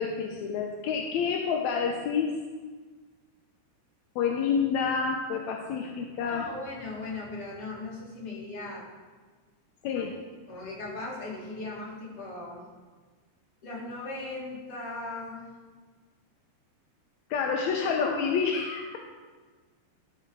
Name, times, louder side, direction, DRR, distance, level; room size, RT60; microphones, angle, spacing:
voice 1, 0.0-2.3 4.2-6.5 9.8-10.1 17.3-19.0, left 6 dB, 75° left, 1 dB, 1.7 m, -28 dB
voice 2, 6.3-8.8 9.9-10.0 10.5-12.6 13.6-15.5, left 2 dB, 50° left, -4 dB, 2.7 m, -38 dB
12.5 x 4.9 x 4.6 m, 1.4 s
omnidirectional pair, 3.8 m